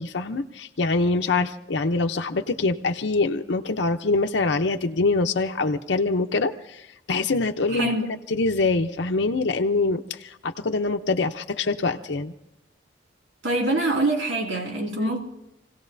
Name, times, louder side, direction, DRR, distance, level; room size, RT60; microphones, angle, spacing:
voice 1, 0.0-7.9 8.3-12.3, left 3 dB, 65° left, 0.7 m, -24 dB
voice 2, 7.7-8.1 13.4-15.2, right 2 dB, 75° right, 2.4 m, -24 dB
28.0 x 17.5 x 2.7 m
head